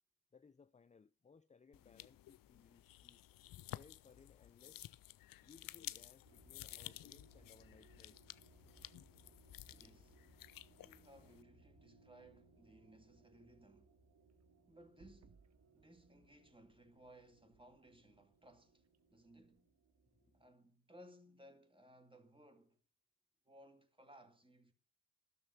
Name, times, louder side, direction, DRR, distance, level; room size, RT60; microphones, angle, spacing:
voice 1, 0.3-3.2 3.7-4.8 5.4-8.2 20.1-20.4, left 5 dB, 20° left, 0.5 m, -64 dB
sound 1, 1.7-11.4, left 14 dB, 70° left, 0.5 m, -54 dB
sound 2, 6.2-20.6, right 3 dB, 65° right, 2.7 m, -68 dB
voice 2, 9.7-10.2 10.8-14.0 14.7-19.7 20.3-22.8 23.4-24.7, right 1 dB, 15° right, 2.4 m, -62 dB
sound 3, 14.2-19.6, right 5 dB, 45° right, 1.1 m, -72 dB
12.0 x 6.6 x 7.7 m
supercardioid pair, 45°, 35 cm